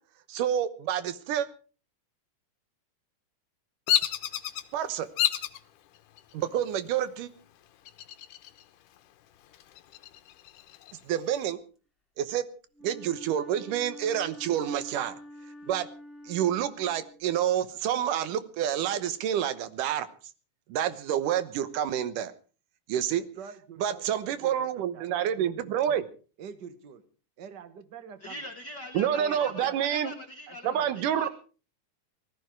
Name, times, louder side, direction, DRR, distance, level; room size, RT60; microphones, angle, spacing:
voice 1, 0.3-1.5 4.7-5.1 6.3-7.3 11.1-11.6 12.2-12.4 12.8-15.1 15.7-15.9 16.3-20.1 20.7-22.3 22.9-23.2 23.8-26.0 28.9-30.1 30.6-31.3, right 10 dB, 75° right, 13 dB, 2.6 m, -28 dB
Bird vocalization bird call bird song, 3.9-4.6 5.2-5.6 6.2-6.7 7.9-8.6 9.0-9.1 9.5-10.9, left 12 dB, 75° left, 2.4 m, -29 dB
Wind instrument woodwind instrument, 12.7-17.5, left 1 dB, ahead, 2.6 m, -47 dB
voice 2, 23.4-26.1 26.4-27.0 27.4-28.5 28.9-29.8 30.5-31.2, right 7 dB, 55° right, 11 dB, 1.2 m, -46 dB
voice 3, 28.2-31.3, left 1 dB, 50° left, 6 dB, 1.3 m, -42 dB
19.5 x 14.5 x 4.6 m, 0.37 s
omnidirectional pair, 3.9 m